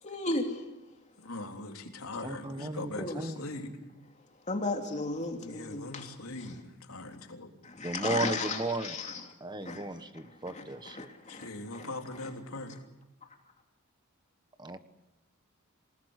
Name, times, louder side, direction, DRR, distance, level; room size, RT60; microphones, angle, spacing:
voice 1, 0.0-0.7 3.0-3.2 4.5-6.1 7.6-9.2 9.6-9.8 10.5-11.9, left 2 dB, 35° left, 3 dB, 3.0 m, -35 dB
voice 2, 1.2-3.7 5.4-7.5 11.3-12.8, left 2 dB, 80° left, 3 dB, 3.6 m, -41 dB
voice 3, 2.2-3.5 7.8-11.1 14.6-14.8, right 2 dB, 20° right, 10 dB, 1.4 m, -35 dB
27.5 x 19.5 x 8.2 m, 0.99 s
head